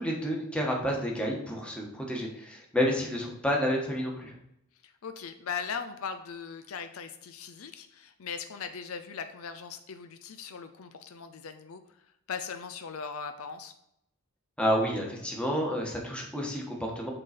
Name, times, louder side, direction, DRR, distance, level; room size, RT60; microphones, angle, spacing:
voice 1, 0.0-4.3 14.6-17.1, equal, 5° left, -1 dB, 1.3 m, -30 dB
voice 2, 4.8-11.8 12.3-13.7, left 6 dB, 70° left, 9 dB, 0.5 m, -39 dB
7.8 x 3.9 x 4.2 m, 0.79 s
head